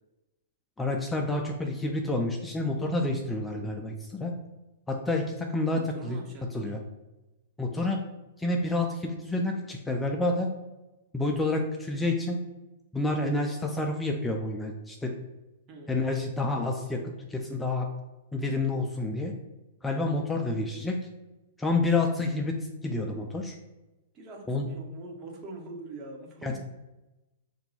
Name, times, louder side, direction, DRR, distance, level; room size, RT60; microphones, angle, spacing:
voice 1, 0.8-4.3 4.9-6.2 6.5-6.8 7.6-8.0 8.4-10.5 11.1-12.4 12.9-15.1 15.9-17.9 18.3-19.3 19.8-21.0 21.6-23.6 24.5-24.7 26.4-26.6, left 2 dB, 10° left, 2 dB, 0.3 m, -29 dB
voice 2, 5.7-6.7 15.7-16.0 24.1-26.6, right 2 dB, 30° right, 1 dB, 0.7 m, -43 dB
2.7 x 2.2 x 4.0 m, 1.0 s
figure-of-eight pair, 105°, 0 cm